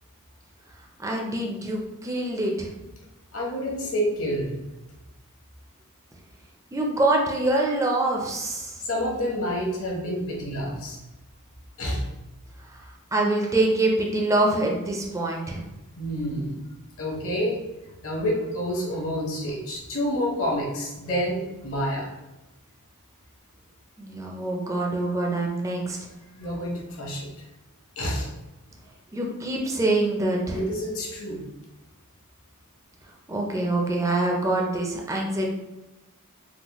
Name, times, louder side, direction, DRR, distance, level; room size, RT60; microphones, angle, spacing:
voice 1, 1.0-2.7 6.7-8.8 13.1-15.6 24.0-26.0 29.1-30.6 33.3-35.5, right 2 dB, 15° right, 0 dB, 0.4 m, -25 dB
voice 2, 3.3-4.6 8.8-11.0 11.8-12.0 16.0-16.6 17.0-17.6 18.0-22.1 26.4-27.3 28.0-28.3 30.5-31.4, equal, 65° left, -3 dB, 1.0 m, -28 dB
3.9 x 2.0 x 2.9 m, 1.0 s
head